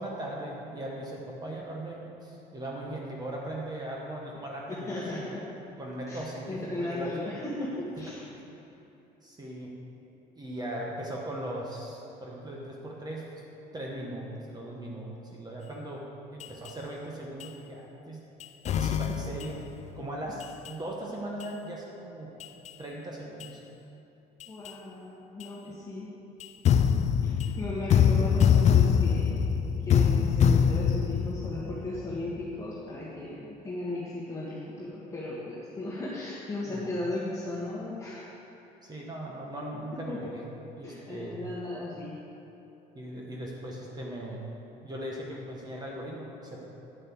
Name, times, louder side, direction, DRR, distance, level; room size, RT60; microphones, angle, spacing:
voice 1, 0.0-5.2 5.8-7.1 9.2-9.7 10.4-13.2 13.7-16.0 16.3-18.2 18.8-19.6 20.0-22.3 22.8-23.6 25.6-25.7 36.7-36.9 38.8-40.5 40.8-41.4 42.9-44.4 44.8-46.7, right 1 dB, 25° right, -3 dB, 1.3 m, -38 dB
voice 2, 4.7-5.4 6.1-6.2 6.5-8.2 24.5-26.1 27.2-29.4 29.7-38.3 40.1-40.3 40.8-42.2, left 2 dB, 20° left, -7 dB, 1.5 m, -36 dB
sound 1, 16.4-16.7 17.4-17.5 18.4-19.7 20.4-20.7 21.4-21.5 22.4-22.7 23.4-23.5 24.4-24.7 25.4-25.5 26.4-32.2, left 7 dB, 45° left, 0.4 m, -24 dB
10.0 x 5.4 x 7.1 m, 2.9 s
cardioid pair, 110°, 17 cm